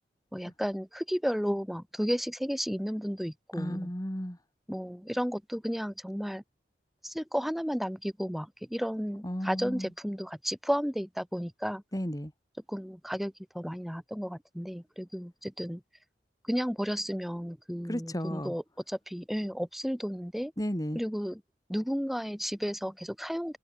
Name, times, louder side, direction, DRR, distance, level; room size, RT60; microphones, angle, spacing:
voice 1, 0.3-3.9 4.7-6.4 7.0-11.8 12.7-15.8 16.5-20.5 20.9-21.4 21.7-23.6, equal, ahead, 3.4 m, -33 dB
voice 2, 3.6-4.4 9.2-9.9 11.9-12.3 17.9-18.5 20.6-21.0, equal, 20° left, 2.9 m, -33 dB
head